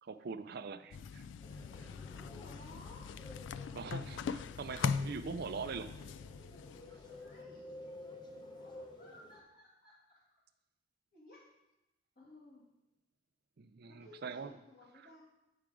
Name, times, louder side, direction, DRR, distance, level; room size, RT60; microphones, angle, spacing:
voice 1, 0.0-1.3 1.8-1.9 3.7-6.0 6.9-7.0 13.6-14.5, right 5 dB, 55° right, 11 dB, 0.4 m, -43 dB
sound 1, 0.9-7.4, left 6 dB, 70° left, 0.3 m, -41 dB
sound 2, 1.4-9.4, left 1 dB, 25° left, 0.8 m, -52 dB
voice 2, 2.1-3.1 6.9-10.0 11.1-11.4 12.2-12.6 14.0-15.2, left 2 dB, 50° left, -7 dB, 2.1 m, -58 dB
9.0 x 4.8 x 4.8 m, 0.94 s
head